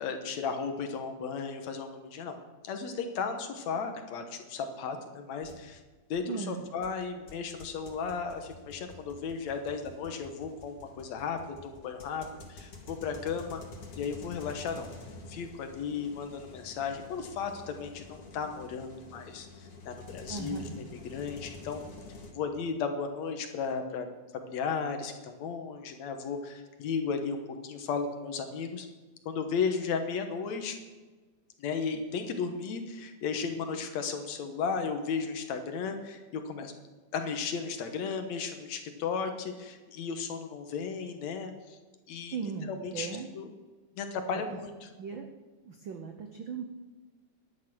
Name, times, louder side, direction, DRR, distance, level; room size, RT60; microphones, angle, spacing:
voice 1, 0.0-2.4 2.6-5.8 6.1-13.6 14.0-14.9 15.3-21.8 22.3-24.1 24.3-28.9 29.3-30.8 31.6-36.7 37.1-41.8 42.1-43.1 43.3-43.5 44.0-44.9, left 5 dB, 70° left, 6 dB, 2.3 m, -35 dB
sound 1, 5.4-5.6 6.1-6.2 6.8-22.3, left 3 dB, 50° left, 2.9 m, -48 dB
voice 2, 6.3-6.6 20.3-20.8 42.3-43.3 45.0-45.3 45.6-46.7, right 6 dB, 85° right, 4 dB, 1.0 m, -38 dB
11.0 x 11.0 x 6.2 m, 1.3 s
omnidirectional pair, 3.5 m